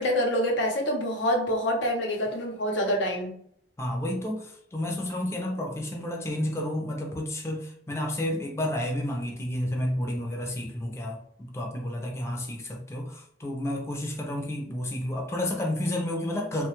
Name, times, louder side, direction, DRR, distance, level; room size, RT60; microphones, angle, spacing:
voice 1, 0.0-3.3, equal, 90° left, 1 dB, 0.8 m, -26 dB
voice 2, 3.8-16.7, left 1 dB, 15° left, 1 dB, 0.4 m, -31 dB
2.8 x 2.2 x 2.9 m, 0.65 s
head